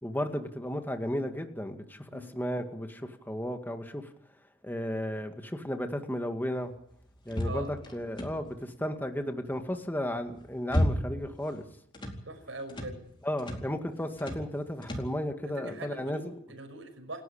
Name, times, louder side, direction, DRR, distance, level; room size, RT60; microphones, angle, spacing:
voice 1, 0.0-4.1 4.6-6.7 7.3-11.6 13.2-16.3, equal, 10° left, 5 dB, 2.1 m, -34 dB
sound 1, 7.3-8.7 10.2-11.3 11.6-12.2 12.7-13.0 13.4-13.7 14.2-14.5 14.8-15.2, equal, 25° left, 4.4 m, -32 dB
voice 2, 12.2-13.0 15.6-17.2, right 2 dB, 75° right, 4 dB, 5.8 m, -41 dB
29.0 x 12.0 x 8.7 m, 0.69 s
head